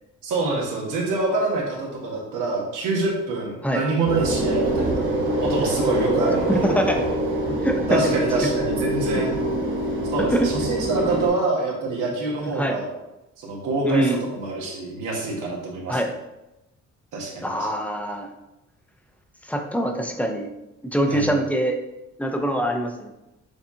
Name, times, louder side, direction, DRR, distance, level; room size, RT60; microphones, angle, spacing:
voice 1, 0.2-5.1 5.4-6.7 7.9-9.3 10.1-12.9 13.4-16.0 17.1-17.7 21.1-21.3, right 3 dB, 90° right, -2 dB, 1.3 m, -26 dB
sound 1, 4.1-11.3, right 1 dB, 40° right, 1.0 m, -24 dB
voice 2, 6.5-7.0 7.6-8.2 9.1-9.2 10.2-10.5 12.4-12.8 13.8-14.2 15.9-16.1 17.4-18.3 19.5-20.5 20.9-21.8 22.2-23.1, right 1 dB, 5° left, 3 dB, 0.5 m, -23 dB
6.7 x 2.4 x 2.7 m, 0.94 s
cardioid pair, 90°, 30 cm